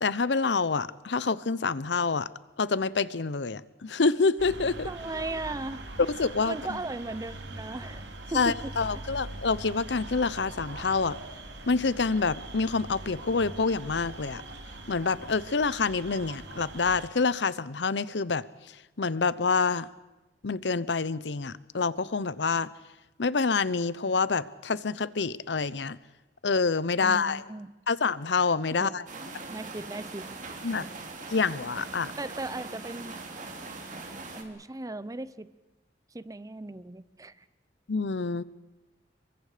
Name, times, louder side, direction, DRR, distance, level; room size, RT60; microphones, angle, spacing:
voice 1, 0.0-2.3 2.6-4.9 6.2-6.8 8.3-11.2 11.7-14.4 14.9-18.4 19.0-19.9 20.4-22.7 23.2-26.0 26.4-27.4 27.9-29.0 30.6-30.8 31.3-32.1 37.9-38.4, left 4 dB, 70° left, 18 dB, 0.8 m, -27 dB
sound 1, 4.4-17.1, right 2 dB, 85° right, 2.6 m, -42 dB
voice 2, 4.8-5.9 6.4-8.0 8.3-8.7 27.0-27.7 28.8-29.1 29.5-30.3 30.7-31.0 32.2-33.2 34.4-35.5 36.1-37.3, right 2 dB, 20° right, 16 dB, 0.7 m, -37 dB
sound 2, 29.1-34.4, right 3 dB, 45° right, 2.7 m, -41 dB
28.0 x 23.5 x 5.1 m, 1.1 s
head